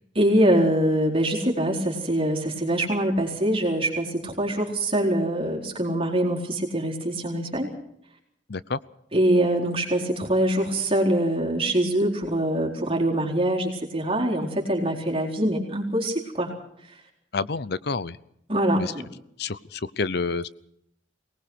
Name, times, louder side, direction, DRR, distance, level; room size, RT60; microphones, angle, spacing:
voice 1, 0.2-7.7 9.1-16.5 18.5-19.1, right 1 dB, 30° right, -1 dB, 4.0 m, -24 dB
voice 2, 8.5-8.8 17.3-18.2 18.8-18.9 19.4-20.5, left 4 dB, 55° left, 18 dB, 0.7 m, -28 dB
23.5 x 19.0 x 6.2 m, 0.73 s
head